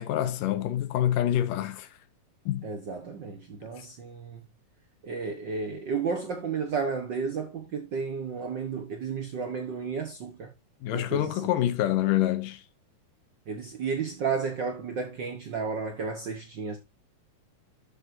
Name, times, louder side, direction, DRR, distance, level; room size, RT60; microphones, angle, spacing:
voice 1, 0.0-1.9 2.5-2.7 10.8-12.6, left 12 dB, 80° left, 2.6 m, -26 dB
voice 2, 2.6-4.4 5.0-10.5 10.9-11.5 13.5-16.8, right 5 dB, 85° right, 0.9 m, -32 dB
12.5 x 6.3 x 2.7 m
omnidirectional pair, 3.8 m